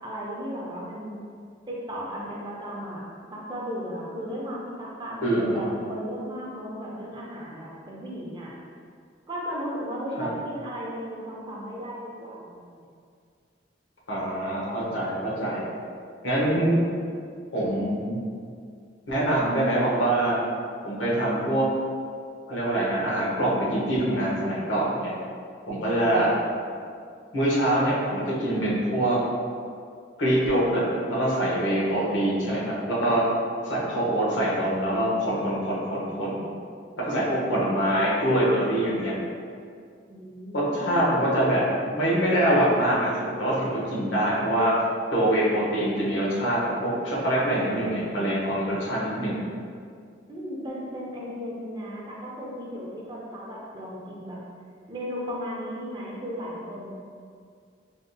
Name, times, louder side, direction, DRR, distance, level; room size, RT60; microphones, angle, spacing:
voice 1, 0.0-1.2 1.7-3.0 3.3-8.5 9.3-12.9 25.7-26.3 40.1-41.2 50.3-54.4 54.9-56.9, equal, 25° right, -4 dB, 0.5 m, -35 dB
voice 2, 5.2-5.7 10.2-10.3 14.1-15.6 16.2-16.8 17.5-18.2 19.1-20.4 20.8-21.7 22.5-25.1 25.7-26.3 27.3-29.2 30.2-33.3 33.6-36.4 37.1-39.1 40.5-44.7 45.1-49.4, right 1 dB, 85° left, -6 dB, 0.9 m, -24 dB
3.5 x 2.3 x 2.6 m, 2.2 s
head